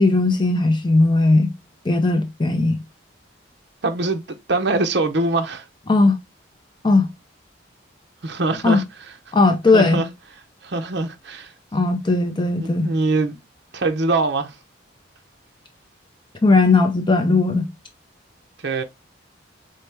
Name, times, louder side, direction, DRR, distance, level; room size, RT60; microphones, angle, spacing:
voice 1, 0.0-1.5 1.8-2.8 5.9-6.2 6.8-7.1 8.6-8.8 9.3-10.0 11.7-12.9 16.4-17.7, left 3 dB, 25° left, 0.5 m, -17 dB
voice 2, 3.8-4.2 4.5-5.6 8.2-8.8 9.7-10.1 10.6-11.5 12.5-13.4 13.7-14.5 18.6-18.8, right 3 dB, 60° right, 0.7 m, -23 dB
4.2 x 3.2 x 3.3 m
head